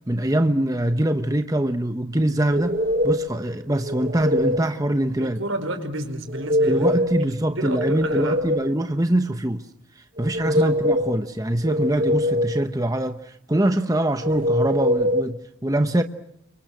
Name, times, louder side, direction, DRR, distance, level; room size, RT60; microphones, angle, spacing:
voice 1, 0.1-5.4 6.6-9.6 10.2-16.0, right 1 dB, 15° right, 1.0 m, -23 dB
sound 1, 2.5-3.4 3.8-4.7 6.3-7.3 7.6-8.7 10.2-11.2 11.6-12.6 14.2-15.3, left 1 dB, 45° right, 1.5 m, -23 dB
voice 2, 5.2-8.5 10.4-10.8, right 1 dB, 85° right, 4.9 m, -31 dB
30.0 x 24.5 x 6.2 m
head